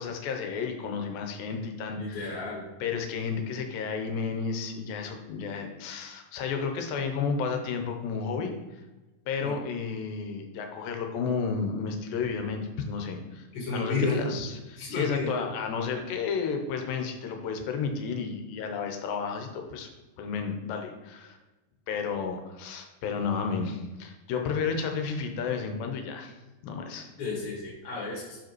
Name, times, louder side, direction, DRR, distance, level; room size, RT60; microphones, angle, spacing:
voice 1, 0.0-2.4 2.8-8.5 9.3-19.9 20.2-21.4 21.9-26.3 26.6-27.1, left 5 dB, 85° left, 4 dB, 2.5 m, -32 dB
voice 2, 2.0-2.6 9.4-9.5 13.5-14.2 14.8-15.3 27.2-28.4, left 3 dB, 55° left, -4 dB, 2.0 m, -32 dB
5.6 x 5.0 x 4.6 m, 1.1 s
omnidirectional pair, 4.1 m